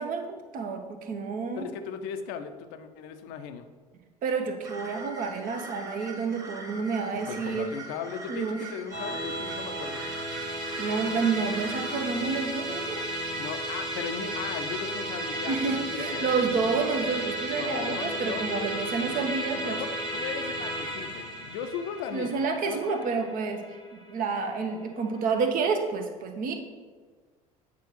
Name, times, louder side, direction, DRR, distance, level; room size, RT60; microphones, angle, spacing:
voice 1, 0.0-1.7 4.2-7.7 8.3-8.6 10.8-13.0 15.5-19.8 22.1-26.5, right 5 dB, 45° right, 4 dB, 0.9 m, -29 dB
voice 2, 1.6-3.7 7.3-10.0 13.4-16.3 17.6-22.3 22.7-23.1, left 7 dB, 60° left, 9 dB, 0.6 m, -37 dB
sound 1, 4.6-12.0, right 2 dB, 20° right, 1.1 m, -43 dB
Musical instrument, 8.9-24.4, right 1 dB, 75° right, 1.2 m, -34 dB
8.3 x 4.8 x 3.1 m, 1.5 s
figure-of-eight pair, 65°, 19 cm